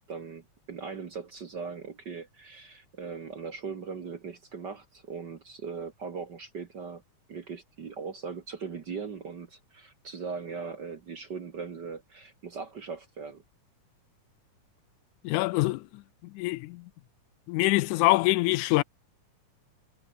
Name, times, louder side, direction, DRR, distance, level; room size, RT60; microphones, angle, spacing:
voice 1, 0.0-7.0 7.3-13.4, right 5 dB, 45° right, 1.5 m, -39 dB
voice 2, 15.2-16.0 16.3-16.8 17.5-18.8, left 20 dB, 85° left, 2.0 m, -25 dB
omnidirectional pair, 3.5 m